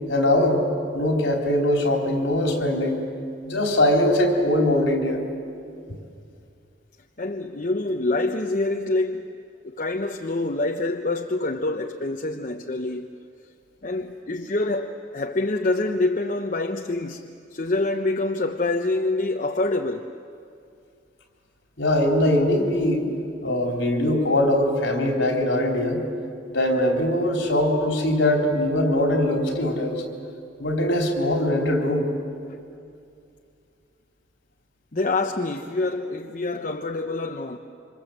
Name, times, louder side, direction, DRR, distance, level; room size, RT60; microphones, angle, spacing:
voice 1, 0.1-0.7 0.9-3.0 3.4-5.2 21.8-23.0 23.4-26.0 26.5-30.0 30.6-32.1, left 1 dB, 65° left, 4.0 m, -21 dB
voice 2, 7.2-9.4 9.6-13.1 13.8-17.3 17.5-20.1 32.5-32.6 34.9-37.6, left 2 dB, 40° left, 0.8 m, -26 dB
27.0 x 26.0 x 7.9 m
head